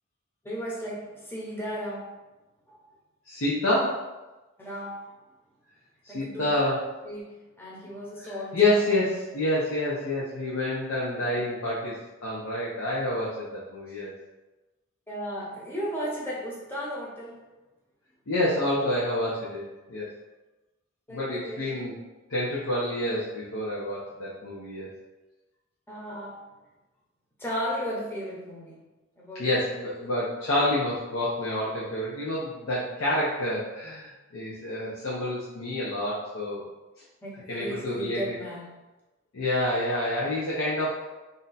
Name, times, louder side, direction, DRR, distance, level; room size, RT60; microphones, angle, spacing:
voice 1, 0.4-2.1 2.7-2.8 4.6-5.1 6.1-6.5 7.0-8.8 11.1-11.4 11.8-11.9 15.1-17.5 21.1-21.8 25.9-26.4 27.4-28.9 29.2-29.5 37.2-38.7, equal, 10° left, -5 dB, 0.6 m, -35 dB
voice 2, 3.3-4.0 6.0-6.8 8.2-14.1 18.3-19.6 19.9-20.1 21.1-22.0 22.3-24.9 29.3-36.7 37.5-38.2 39.3-41.0, left 1 dB, 85° left, -7 dB, 0.7 m, -28 dB
2.6 x 2.2 x 3.9 m, 1.1 s
head